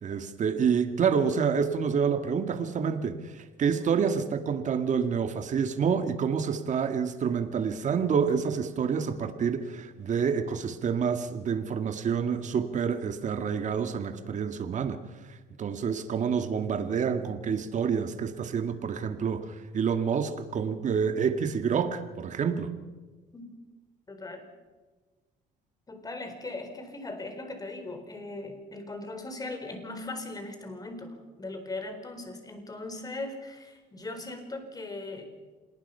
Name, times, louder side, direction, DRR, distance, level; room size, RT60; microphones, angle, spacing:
voice 1, 0.0-15.0 15.6-22.7, right 6 dB, 45° right, 8 dB, 1.9 m, -28 dB
voice 2, 24.1-24.5 25.9-35.3, left 2 dB, 20° left, 7 dB, 4.3 m, -39 dB
27.5 x 19.5 x 5.7 m, 1.3 s
cardioid pair, 110°, 17 cm